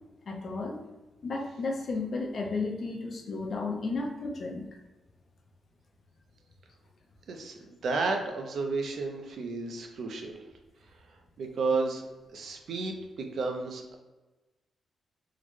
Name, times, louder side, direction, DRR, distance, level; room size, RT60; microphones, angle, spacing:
voice 1, 0.3-0.8 1.2-4.7, left 3 dB, 50° left, 1 dB, 0.5 m, -33 dB
voice 2, 7.3-10.4 11.4-12.0 12.3-14.0, right 3 dB, 65° right, 4 dB, 0.5 m, -32 dB
3.8 x 2.1 x 3.1 m, 1.1 s
wide cardioid pair, 135°, 0 cm